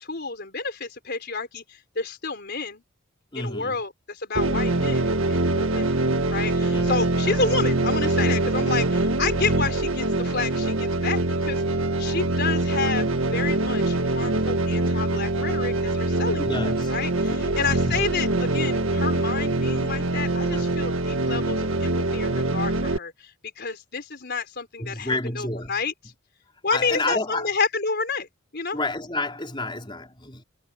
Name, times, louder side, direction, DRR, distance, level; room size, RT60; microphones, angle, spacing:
voice 1, 0.1-1.6 2.0-2.8 3.3-6.0 6.3-11.6 12.0-16.5 16.9-23.1 23.6-25.9 26.6-28.3 28.5-28.8, left 4 dB, 50° left, 4.4 m, -29 dB
voice 2, 3.3-3.8 6.7-7.1 16.4-16.9 17.3-18.1 20.5-20.8 21.3-21.4 24.8-25.8 26.7-27.5 28.7-30.4, left 2 dB, 25° left, 4.4 m, -30 dB
sound 1, 4.4-23.0, right 2 dB, 70° right, 1.7 m, -24 dB
head